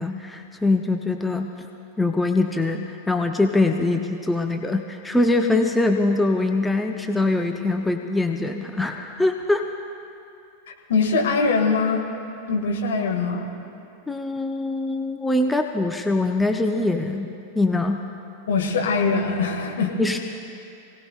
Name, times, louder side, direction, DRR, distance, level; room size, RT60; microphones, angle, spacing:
voice 1, 0.0-1.5 2.0-9.7 14.1-17.3 17.5-18.0 20.0-20.2, left 2 dB, 5° left, 4 dB, 0.7 m, -23 dB
voice 2, 10.9-12.0 12.5-13.5 18.5-20.0, left 4 dB, 60° left, 0 dB, 2.2 m, -22 dB
27.0 x 17.5 x 2.5 m, 2.7 s
figure-of-eight pair, 90°, 0 cm